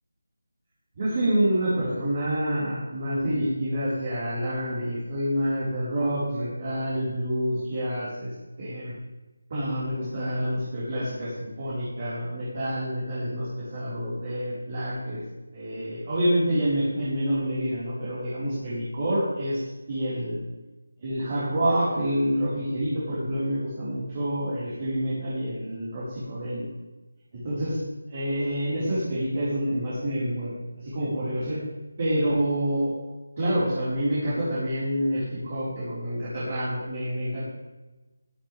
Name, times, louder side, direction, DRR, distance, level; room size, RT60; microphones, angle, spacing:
voice 1, 0.9-8.9 9.5-15.2 15.5-19.6 19.9-20.4 21.0-26.6 27.3-27.8 28.1-30.5 30.8-31.6 32.0-32.9 33.4-37.5, equal, 35° right, -10 dB, 4.9 m, -27 dB
16.0 x 12.0 x 3.6 m, 1.1 s
figure-of-eight pair, 170°, 0 cm